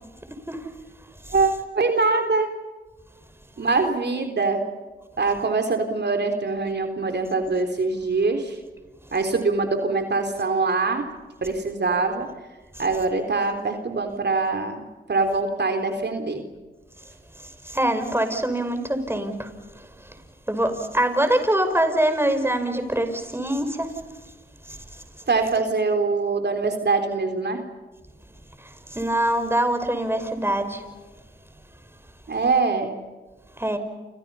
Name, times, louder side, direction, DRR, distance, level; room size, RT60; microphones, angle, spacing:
voice 1, 1.3-2.5 3.6-4.6 5.2-8.6 9.1-11.1 11.4-12.3 12.8-14.8 15.1-16.5 25.3-27.6 32.3-32.9, right 3 dB, 55° right, 5 dB, 3.8 m, -23 dB
voice 2, 17.4-20.1 20.5-24.0 24.7-25.0 28.6-30.8 33.6-33.8, right 1 dB, 10° right, 8 dB, 5.6 m, -24 dB
29.5 x 28.0 x 5.7 m, 1.3 s
cardioid pair, 50°, 21 cm